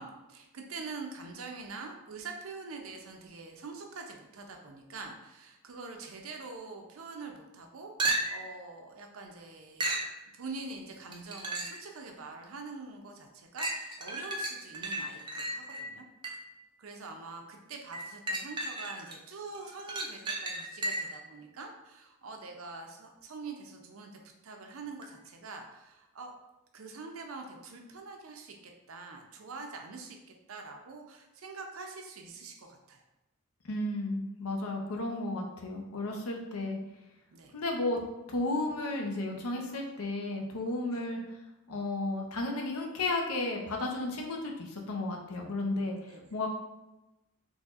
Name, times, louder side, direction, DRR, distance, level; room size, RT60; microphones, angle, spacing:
voice 1, 0.0-9.9 10.3-16.0 16.8-24.1 24.4-26.3 26.7-30.2 30.5-33.0 37.3-37.5 40.9-41.1 46.1-46.2, right 3 dB, 70° right, 3 dB, 0.6 m, -45 dB
sound 1, 8.0-8.6 9.8-10.1 11.1-11.9 12.4-12.5 13.6-16.6 17.9-19.2 19.5-21.2 25.0-25.1, right 2 dB, 20° right, 0.4 m, -34 dB
voice 2, 33.6-36.8 37.5-38.0 38.3-41.2 41.7-46.5, left 2 dB, 85° left, 2 dB, 0.7 m, -33 dB
4.1 x 3.0 x 2.4 m, 0.99 s
head